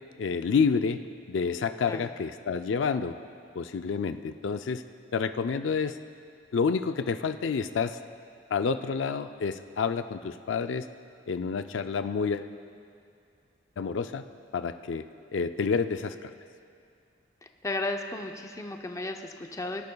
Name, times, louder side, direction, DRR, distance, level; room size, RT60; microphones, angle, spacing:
voice 1, 0.2-1.0 1.3-3.1 3.6-4.8 5.1-6.0 6.5-8.0 8.5-10.9 11.3-12.5 13.8-14.2 14.5-15.1 15.3-16.3, left 5 dB, 85° left, 9 dB, 0.4 m, -29 dB
voice 2, 17.6-19.9, left 2 dB, 15° left, 4 dB, 0.6 m, -34 dB
23.0 x 10.5 x 2.3 m, 2.4 s
head